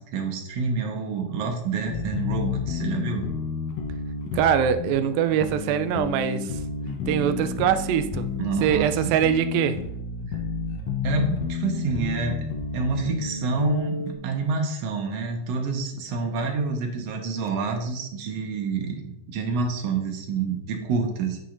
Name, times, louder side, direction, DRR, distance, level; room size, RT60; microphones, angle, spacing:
voice 1, 0.0-3.3 8.4-9.0 10.3-10.4 11.0-12.4 12.7-21.4, right 4 dB, 60° right, 1.9 m, -28 dB
sound 1, 1.9-14.1, left 5 dB, 70° left, 1.6 m, -31 dB
voice 2, 4.3-6.6 7.1-8.3 8.6-9.8, right 9 dB, 80° right, 2.3 m, -23 dB
9.2 x 8.3 x 2.6 m
omnidirectional pair, 4.1 m